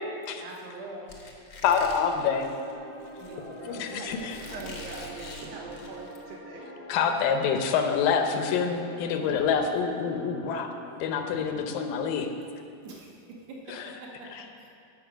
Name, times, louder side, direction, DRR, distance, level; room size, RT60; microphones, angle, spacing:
voice 1, 0.4-1.2 3.2-5.0 5.4-5.6 9.2-9.4 11.3-11.5 12.8-13.1 13.5-13.7 14.0-14.3 14.6-14.7, right 2 dB, 60° right, -2 dB, 2.2 m, -44 dB
Squeak, 1.1-6.2, left 3 dB, 60° left, 1.1 m, -45 dB
voice 2, 1.6-2.5 3.7-4.4 6.9-10.7 11.0-12.3 13.7-13.9 14.3-14.4, left 6 dB, 80° left, 6 dB, 2.4 m, -26 dB
sound 1, 2.2-10.9, left 1 dB, 10° left, 0.8 m, -45 dB
voice 3, 4.5-6.7 7.4-7.5, right 4 dB, 85° right, -1 dB, 2.8 m, -42 dB
14.5 x 5.7 x 6.2 m, 2.4 s
omnidirectional pair, 4.0 m